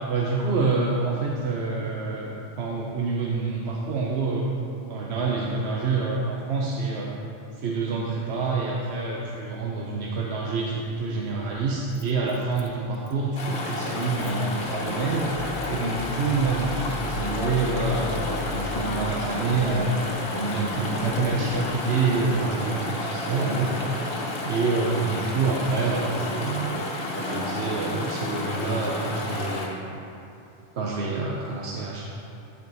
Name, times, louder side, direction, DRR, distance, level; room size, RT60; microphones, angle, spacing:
voice 1, 0.1-7.1 7.5-15.3 15.7-23.8 24.4-26.7 27.1-30.0 30.7-32.0, right 3 dB, 85° right, -3 dB, 1.0 m, -27 dB
Motor vehicle (road), 11.5-22.7, left 3 dB, 60° left, 0.9 m, -40 dB
Chatter / Stream, 13.4-29.7, left 2 dB, 80° left, 1.3 m, -31 dB
12.5 x 4.9 x 4.0 m, 2.7 s
omnidirectional pair, 1.1 m